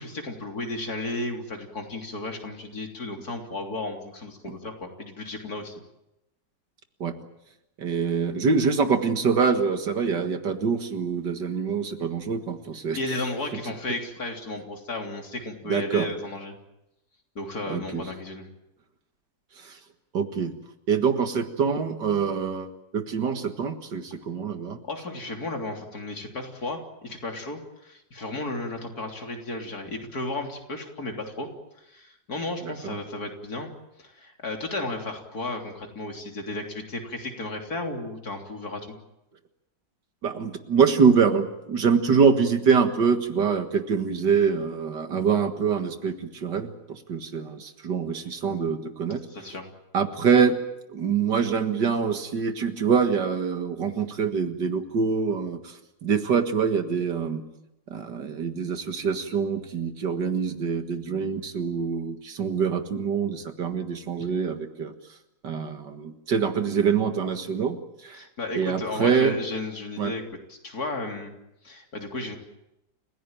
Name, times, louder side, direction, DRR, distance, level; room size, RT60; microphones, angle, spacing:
voice 1, 0.0-5.7 13.0-16.6 17.4-18.5 24.9-31.5 31.8-33.7 34.0-39.0 49.3-49.7 68.1-70.2 70.5-71.3 71.6-72.4, left 2 dB, 55° left, 3 dB, 3.9 m, -34 dB
voice 2, 7.8-13.0 15.7-16.1 17.7-18.0 19.6-19.8 20.1-20.5 20.9-24.8 32.6-33.0 40.2-49.2 49.5-49.6 49.9-50.6 50.9-57.4 57.9-64.9 65.4-67.8 68.0-68.2 68.6-69.3 70.0-70.1, right 6 dB, 70° right, 8 dB, 2.3 m, -25 dB
30.0 x 16.5 x 9.0 m, 0.88 s
omnidirectional pair, 2.0 m